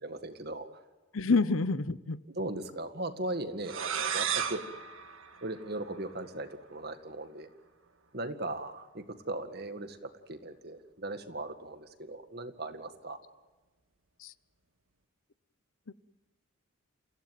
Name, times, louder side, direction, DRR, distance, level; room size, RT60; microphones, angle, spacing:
voice 1, 0.0-0.7 1.2-1.4 2.4-4.6 5.4-7.5 8.1-13.2, right 2 dB, 45° right, 8 dB, 1.9 m, -38 dB
voice 2, 1.1-2.2 14.2-14.3, left 3 dB, 70° left, 16 dB, 0.8 m, -27 dB
sound 1, 3.6-6.2, right 8 dB, 70° right, 1.7 m, -35 dB
29.0 x 16.0 x 9.3 m, 1.2 s
head